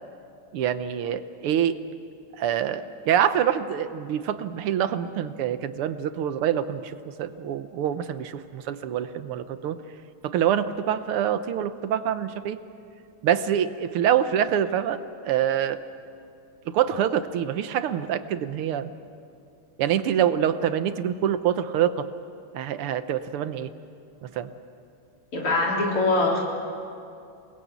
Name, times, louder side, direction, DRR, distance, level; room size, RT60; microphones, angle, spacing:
voice 1, 0.5-1.8 2.4-9.8 10.2-12.6 13.2-15.0 15.3-15.8 16.7-18.9 19.8-22.1 22.5-23.7 24.2-24.5, right 9 dB, 80° right, 11 dB, 1.8 m, -25 dB
voice 2, 25.3-26.4, left 2 dB, 80° left, -2 dB, 4.8 m, -23 dB
28.0 x 20.5 x 8.3 m, 2.5 s
omnidirectional pair, 2.4 m